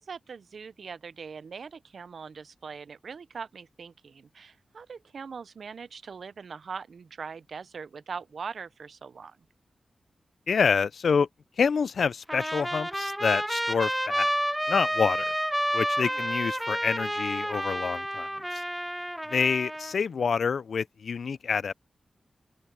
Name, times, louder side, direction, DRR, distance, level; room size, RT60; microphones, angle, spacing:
voice 1, 0.0-9.4 16.0-16.3, right 5 dB, 75° right, 0.5 m, -41 dB
voice 2, 10.5-11.3 11.6-14.3 14.7-15.3 15.7-18.6 19.3-21.7, left 6 dB, 80° left, 0.4 m, -27 dB
Trumpet, 12.3-20.0, equal, 5° right, 0.4 m, -30 dB
open air
wide cardioid pair, 100°, 0 cm